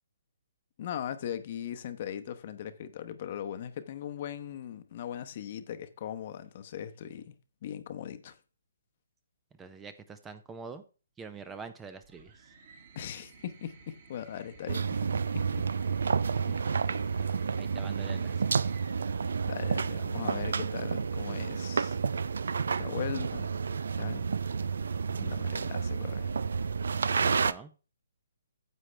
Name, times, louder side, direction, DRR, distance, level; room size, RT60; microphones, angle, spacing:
voice 1, 0.8-7.3 7.6-8.3 12.9-15.0 15.6-15.7 16.6-16.8 19.4-22.0 22.8-23.5 24.0-24.3 25.1-26.3, left 10 dB, 40° left, 0.9 m, -39 dB
voice 2, 9.6-10.8 11.2-12.3 16.4-18.4 27.1-27.7, right 5 dB, 10° right, 0.6 m, -46 dB
sound 1, 12.0-20.4 21.6-22.3, right 4 dB, 45° right, 2.5 m, -56 dB
sound 2, 14.7-27.5, right 5 dB, 70° right, 0.5 m, -30 dB
9.8 x 7.5 x 3.3 m
hypercardioid pair, 155°, 0 cm